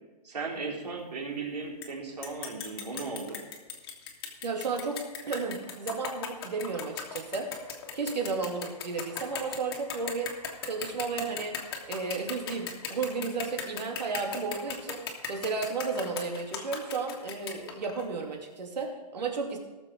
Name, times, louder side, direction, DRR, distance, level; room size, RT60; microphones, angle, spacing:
voice 1, 0.2-3.4, right 4 dB, 70° right, -1 dB, 3.8 m, -36 dB
sound 1, 1.8-1.9 2.2-18.1, left 6 dB, 35° left, 1.5 m, -38 dB
voice 2, 4.4-7.5 7.9-10.3 10.6-11.6 11.9-19.6, right 4 dB, 85° right, 1 dB, 2.7 m, -33 dB
17.5 x 7.0 x 4.9 m, 1.2 s
hypercardioid pair, 175°, 21 cm